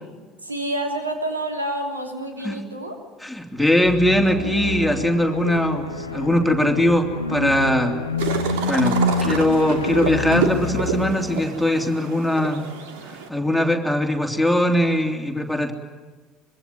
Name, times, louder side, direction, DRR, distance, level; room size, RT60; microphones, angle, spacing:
voice 1, 0.4-3.0, right 1 dB, 80° right, 3 dB, 3.3 m, -28 dB
voice 2, 3.2-8.0 8.7-12.6 13.0-15.7, left 1 dB, ahead, 2 dB, 3.2 m, -21 dB
sound 1, 3.8-11.5, left 2 dB, 85° left, 1.3 m, -27 dB
sound 2, 8.2-13.3, right 6 dB, 65° right, 2.8 m, -29 dB
25.5 x 23.0 x 9.4 m, 1.4 s
figure-of-eight pair, 65°, 0 cm